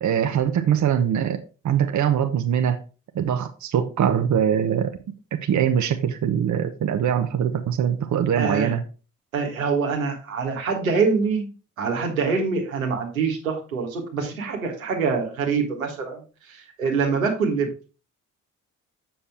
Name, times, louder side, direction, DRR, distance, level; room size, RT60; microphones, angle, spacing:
voice 1, 0.0-2.8 3.1-4.9 5.4-8.8, right 9 dB, 45° right, 1.0 m, -22 dB
voice 2, 8.4-8.7 9.3-11.5 11.8-16.2 16.5-17.7, right 5 dB, 85° right, 1.6 m, -25 dB
7.2 x 6.9 x 3.4 m
figure-of-eight pair, 45°, 40 cm